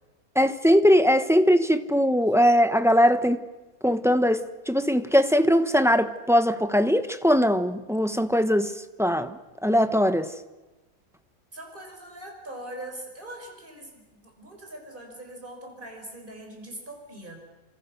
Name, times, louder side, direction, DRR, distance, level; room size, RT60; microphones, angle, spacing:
voice 1, 0.3-3.4 3.8-8.7 9.0-9.4 9.6-10.3, equal, ahead, 0.9 m, -21 dB
voice 2, 11.5-17.4, right 1 dB, 35° right, 6.0 m, -42 dB
29.5 x 26.5 x 6.5 m
omnidirectional pair, 1.6 m